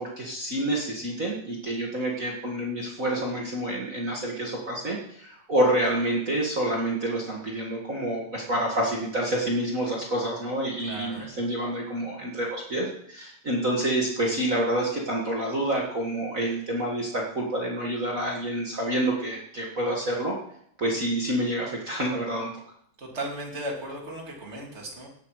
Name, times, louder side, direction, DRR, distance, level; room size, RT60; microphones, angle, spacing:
voice 1, 0.0-20.3 20.8-22.5, right 1 dB, 60° right, -3 dB, 0.8 m, -28 dB
voice 2, 10.8-11.3 23.0-25.1, right 1 dB, 20° right, -1 dB, 2.2 m, -36 dB
17.5 x 8.4 x 4.8 m, 0.69 s
omnidirectional pair, 4.6 m